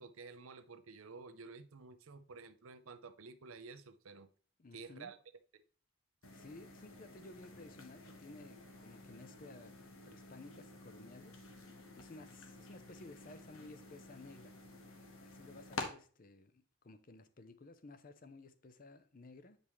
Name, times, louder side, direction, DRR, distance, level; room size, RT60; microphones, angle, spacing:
voice 1, 0.0-4.3 4.7-5.2 5.5-5.6, right 4 dB, 85° right, 0.6 m, -52 dB
voice 2, 4.6-5.1 6.3-9.8 10.1-11.5 12.0-14.5 15.2-19.6, left 2 dB, 40° left, 0.6 m, -55 dB
sound 1, 6.2-15.9, left 3 dB, 90° left, 1.3 m, -50 dB
8.4 x 5.3 x 3.1 m
head